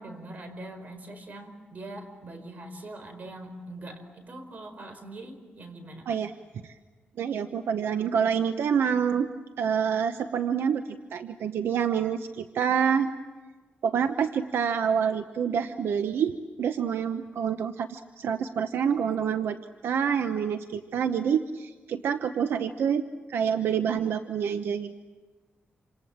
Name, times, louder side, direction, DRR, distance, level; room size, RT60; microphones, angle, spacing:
voice 1, 0.0-6.2, right 1 dB, 45° right, 7 dB, 4.9 m, -42 dB
voice 2, 7.2-9.3 9.6-13.1 13.8-19.6 19.8-23.0 23.3-24.9, right 7 dB, 85° right, 9 dB, 0.9 m, -27 dB
28.0 x 27.0 x 7.4 m, 1.3 s
wide cardioid pair, 120°, 4 cm